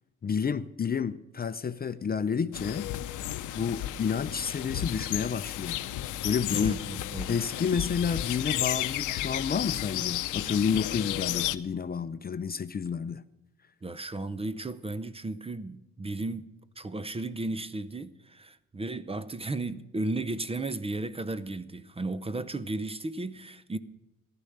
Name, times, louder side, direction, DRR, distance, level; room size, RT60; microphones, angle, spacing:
voice 1, 0.2-2.9 3.5-5.8 6.2-6.7 7.3-13.2, left 6 dB, 30° left, 0.6 m, -30 dB
sound 1, 2.5-11.6, left 13 dB, 80° left, 0.7 m, -33 dB
voice 2, 6.5-7.4 13.8-23.8, right 2 dB, 20° right, 0.7 m, -35 dB
14.5 x 11.5 x 6.7 m
cardioid pair, 90°, 30 cm